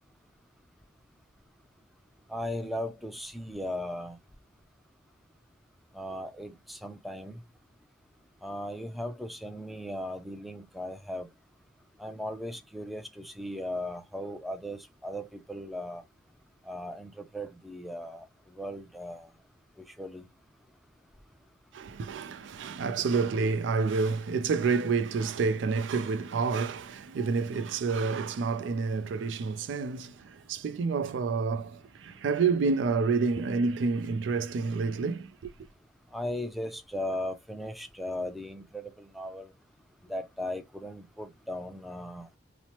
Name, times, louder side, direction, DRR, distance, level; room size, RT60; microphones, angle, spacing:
voice 1, 2.3-4.2 5.9-7.4 8.4-11.3 12.0-16.0 16.7-19.3 19.8-20.2 36.1-39.5 40.1-42.3, left 1 dB, ahead, 0.4 m, -37 dB
voice 2, 21.7-35.5, right 4 dB, 85° right, 0.4 m, -29 dB
2.9 x 2.0 x 2.8 m
head